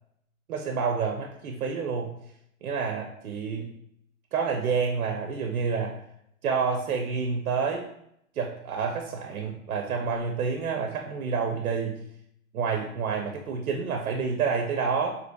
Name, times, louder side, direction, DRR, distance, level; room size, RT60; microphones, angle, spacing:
voice 1, 0.5-2.2 2.6-3.7 4.3-6.0 6.4-7.9 8.4-12.0 12.5-15.2, right 5 dB, 85° right, 3 dB, 0.6 m, -28 dB
3.9 x 2.5 x 2.2 m, 0.75 s
hypercardioid pair, 135°, 43 cm